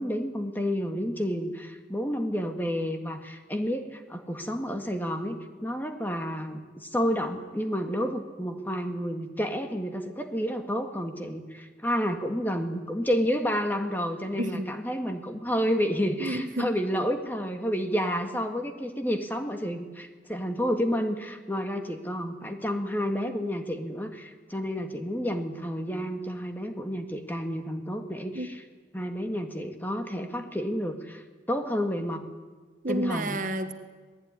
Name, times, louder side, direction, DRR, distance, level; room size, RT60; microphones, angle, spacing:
voice 1, 0.0-28.6 28.9-32.2 32.9-33.4, equal, 10° left, 5 dB, 1.9 m, -30 dB
voice 2, 14.4-14.7 16.2-16.7 28.3-28.6 32.8-33.7, right 1 dB, 45° right, 8 dB, 1.6 m, -30 dB
27.0 x 19.5 x 9.9 m, 1.4 s
head